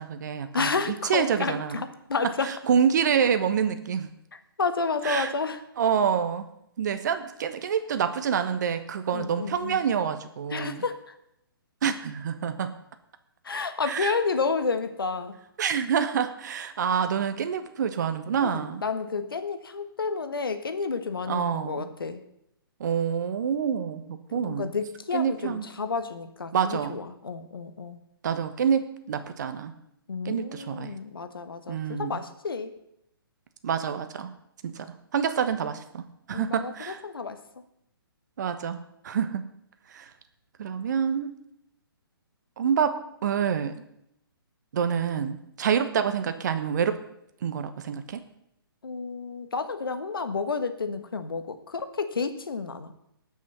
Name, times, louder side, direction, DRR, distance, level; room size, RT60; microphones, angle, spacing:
voice 1, 0.0-1.8 2.4-4.1 5.0-5.3 5.8-6.5 6.8-10.8 11.8-12.7 13.8-14.2 15.6-18.8 21.3-21.9 22.8-24.0 24.3-24.7 25.1-25.6 26.5-27.0 28.2-29.7 30.2-31.0 31.7-32.2 33.6-34.3 34.6-34.9 35.1-37.0 38.4-39.4 39.9-40.1 40.6-41.4 42.6-43.8 44.7-47.0 47.4-48.2, right 7 dB, 50° right, 10 dB, 1.2 m, -27 dB
voice 2, 0.5-2.5 4.6-5.6 9.1-9.9 10.5-11.0 13.4-15.3 18.4-22.2 24.3-28.0 30.1-32.7 36.3-37.4 48.8-52.9, left 4 dB, 70° left, 9 dB, 1.4 m, -30 dB
19.0 x 6.4 x 5.6 m, 0.79 s
figure-of-eight pair, 130°, 12 cm